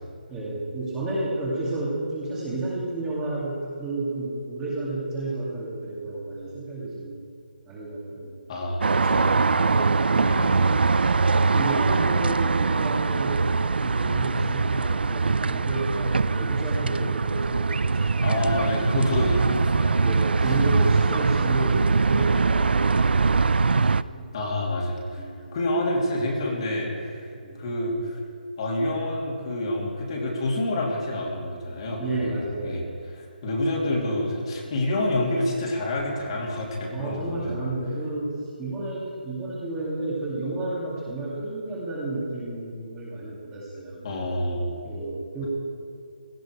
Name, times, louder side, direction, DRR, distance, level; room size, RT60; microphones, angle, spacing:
voice 1, 0.3-7.2 7.7-8.3 8.9-13.5 13.8-18.6 20.0-24.3 25.2-25.6 27.3-27.6 32.0-32.9 36.9-44.1 44.8-45.5, right 2 dB, 10° right, -6 dB, 2.2 m, -32 dB
voice 2, 8.5-9.4 10.2-10.6 18.2-20.0 24.3-25.2 25.5-27.3 27.5-28.2 28.6-37.5 44.0-44.7, left 1 dB, 35° left, -2 dB, 2.9 m, -28 dB
sound 1, 8.8-24.0, right 4 dB, 85° right, 0.4 m, -22 dB
17.0 x 14.0 x 4.8 m, 2.3 s
hypercardioid pair, 170°, 5 cm